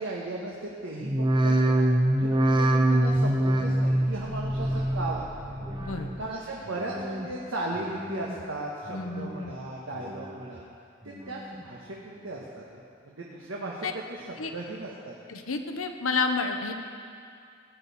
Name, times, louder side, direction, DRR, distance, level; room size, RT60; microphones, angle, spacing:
voice 1, 0.0-1.9 2.2-5.6 6.2-10.7 11.0-15.1, right 2 dB, 75° right, -4 dB, 1.4 m, -36 dB
sound 1, 1.0-6.4 6.7-7.3 7.7-8.4 8.8-9.5 9.9-10.6 11.1-11.6 12.2-12.3, right 1 dB, 25° right, 0.8 m, -26 dB
voice 2, 8.9-9.5 13.8-13.9 14.4-14.5 15.3-16.7, left 4 dB, 90° left, 5 dB, 1.0 m, -30 dB
17.0 x 10.5 x 4.3 m, 2.4 s
head